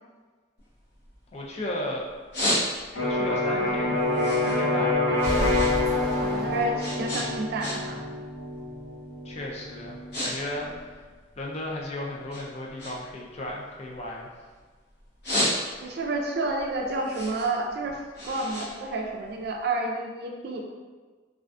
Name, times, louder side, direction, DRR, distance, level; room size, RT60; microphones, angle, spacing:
sound 1, 0.6-1.7 2.1-3.1 3.5-5.8 6.0-8.1 8.4-8.7 9.3-9.5 9.8-10.3 10.6-11.8 12.3-14.6 15.0-16.0 16.5-19.6, equal, 60° left, 0.8 m, -32 dB
voice 1, 1.3-2.1 3.0-5.1 9.2-11.0 11.4-14.3, left 1 dB, 35° left, -2 dB, 0.4 m, -35 dB
Electric guitar, 2.9-10.7, left 2 dB, 90° left, 1.1 m, -27 dB
sound 2, 5.2-7.2, equal, 15° left, 0.8 m, -32 dB
voice 2, 6.2-8.0 15.8-18.0 18.3-20.6, right 2 dB, 60° right, 1 dB, 0.4 m, -30 dB
2.4 x 2.2 x 2.4 m, 1.4 s
head